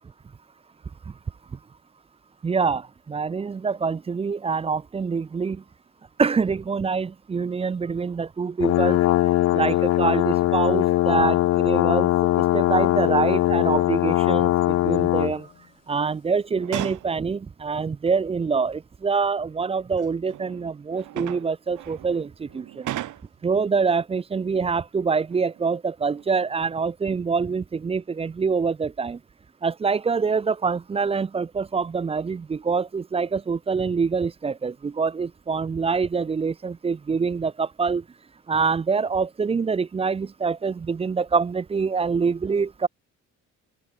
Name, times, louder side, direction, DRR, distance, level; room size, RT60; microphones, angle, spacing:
voice 1, 2.4-5.6 6.2-9.0 9.5-15.5 15.9-22.9 23.4-29.2 29.6-38.0 38.5-42.9, right 5 dB, 20° right, 0.4 m, -25 dB
sound 1, 8.6-15.4, left 15 dB, 60° left, 0.4 m, -21 dB
sound 2, 16.5-17.2 18.3-18.4 19.7-23.5 25.3-25.8 26.2-26.9 27.5-27.6, right 14 dB, 80° right, 4.1 m, -37 dB
cardioid pair, 90°, 30 cm